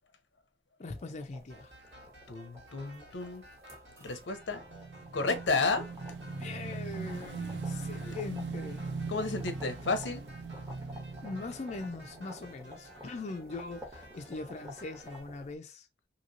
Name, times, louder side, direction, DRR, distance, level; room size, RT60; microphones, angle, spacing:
voice 1, 0.8-1.7 6.3-8.9 11.2-15.9, left 3 dB, 40° left, 0.4 m, -41 dB
sound 1, 0.9-15.6, left 1 dB, 15° right, 0.9 m, -52 dB
sound 2, 1.5-15.2, equal, 90° right, 1.8 m, -54 dB
voice 2, 2.3-3.4 4.0-4.6 5.1-5.9 9.1-10.2, left 3 dB, 90° left, 0.7 m, -31 dB
Motorcycle / Engine, 4.3-12.8, right 4 dB, 70° right, 0.4 m, -40 dB
2.9 x 2.8 x 2.6 m
head